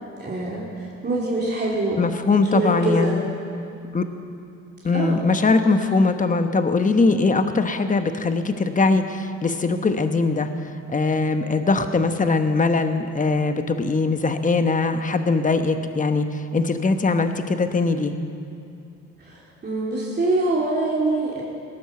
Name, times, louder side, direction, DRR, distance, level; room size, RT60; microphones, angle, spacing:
voice 1, 0.2-2.0 2.5-3.2 4.9-5.2 19.2-21.4, right 2 dB, 35° right, -4 dB, 2.7 m, -24 dB
voice 2, 2.0-3.3 3.9-4.0 4.8-18.1, left 3 dB, 25° left, 8 dB, 1.1 m, -21 dB
18.0 x 10.0 x 7.1 m, 2.6 s
cardioid pair, 90°, 30 cm